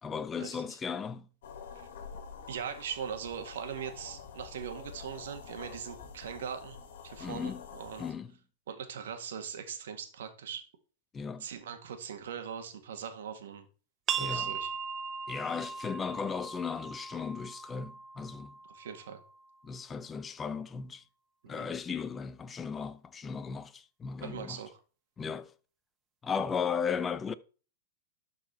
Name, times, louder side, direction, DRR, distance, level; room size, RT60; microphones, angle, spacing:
voice 1, 0.0-1.3 7.2-7.6 8.0-8.3 11.1-11.5 14.2-14.5 15.3-18.5 19.6-21.0 21.5-24.6 25.2-25.5 26.2-27.3, left 6 dB, 15° left, 0.6 m, -36 dB
sound 1, 1.4-8.1, left 6 dB, 70° left, 2.0 m, -47 dB
voice 2, 2.5-6.8 7.0-8.1 8.7-10.7 11.4-13.7 14.1-14.7 18.7-19.2 21.4-21.6 24.2-24.7, right 7 dB, 80° right, 1.9 m, -40 dB
sound 2, 14.1-19.5, right 6 dB, 30° right, 0.6 m, -38 dB
12.5 x 4.6 x 4.3 m
supercardioid pair, 140°, 0 cm